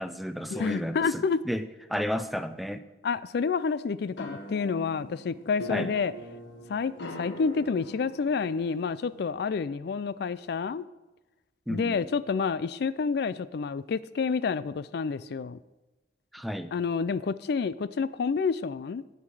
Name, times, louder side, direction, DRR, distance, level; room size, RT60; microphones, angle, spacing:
voice 1, 0.0-2.8 5.7-5.9 11.7-12.1 16.3-16.7, equal, ahead, 10 dB, 0.5 m, -32 dB
voice 2, 0.5-1.4 3.0-6.1 6.7-10.9 11.7-15.6 16.7-19.2, left 5 dB, 65° left, 16 dB, 0.4 m, -29 dB
sound 1, 4.1-9.3, equal, 85° left, 1.5 m, -43 dB
16.5 x 5.7 x 4.8 m, 1.1 s
head